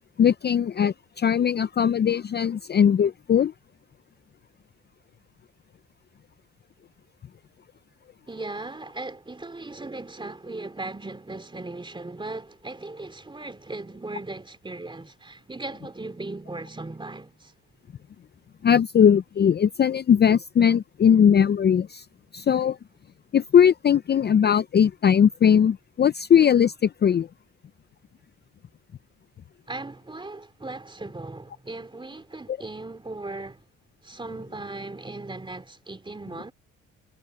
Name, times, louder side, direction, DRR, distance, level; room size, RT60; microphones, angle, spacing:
voice 1, 0.2-3.5 18.6-22.0 22.3-22.8 23.3-27.3, left 8 dB, 35° left, 0.5 m, -19 dB
voice 2, 8.3-17.5 29.7-33.7 34.0-36.5, right 2 dB, 15° right, 3.0 m, -37 dB
cardioid pair, 90°, 30 cm